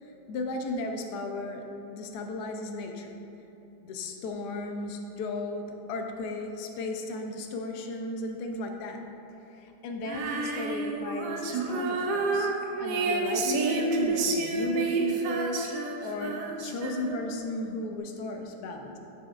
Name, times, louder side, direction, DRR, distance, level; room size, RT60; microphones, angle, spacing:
voice 1, 0.0-3.1 3.8-9.0 9.5-12.5 12.8-19.0, left 2 dB, 80° left, 3 dB, 1.2 m, -35 dB
Female singing, 10.0-17.4, right 3 dB, 85° right, 1.2 m, -29 dB
10.5 x 4.3 x 2.4 m, 3.0 s
omnidirectional pair, 1.8 m